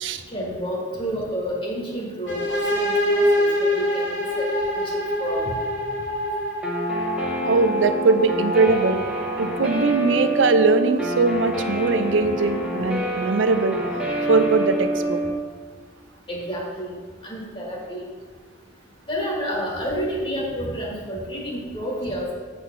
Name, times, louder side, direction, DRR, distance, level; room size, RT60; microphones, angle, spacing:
voice 1, 0.3-4.5 4.7-5.4 16.3-16.9 17.2-18.0 19.1-22.3, equal, 30° left, -3 dB, 1.5 m, -30 dB
sound 1, 2.3-9.9, left 1 dB, 65° left, 2.2 m, -25 dB
Guitar, 6.6-15.3, right 1 dB, 5° right, 1.0 m, -27 dB
voice 2, 7.4-9.0 9.4-13.8 14.3-15.2, right 3 dB, 75° right, 10 dB, 0.5 m, -21 dB
7.4 x 4.2 x 5.7 m, 1.5 s
head